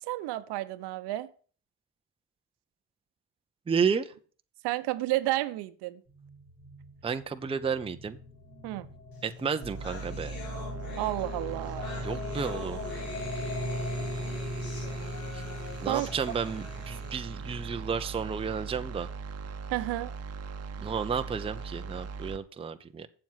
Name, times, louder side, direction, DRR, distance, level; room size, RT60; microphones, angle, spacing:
voice 1, 0.0-1.3 4.6-6.0 8.6-8.9 11.0-11.9 15.8-16.1 19.7-20.1, right 17 dB, 65° right, 0.9 m, -31 dB
voice 2, 3.7-4.1 7.0-8.2 9.2-10.4 12.0-12.8 15.3-15.4 15.8-19.1 20.8-23.1, right 6 dB, 15° right, 0.6 m, -32 dB
sound 1, 6.1-18.3, left 2 dB, 75° left, 6.1 m, -40 dB
sound 2, 9.2-9.3 9.5-17.1, left 2 dB, 50° left, 3.1 m, -45 dB
sound 3, 9.6-22.4, right 4 dB, 35° right, 1.0 m, -40 dB
7.7 x 7.3 x 5.7 m
hypercardioid pair, 75°, 44 cm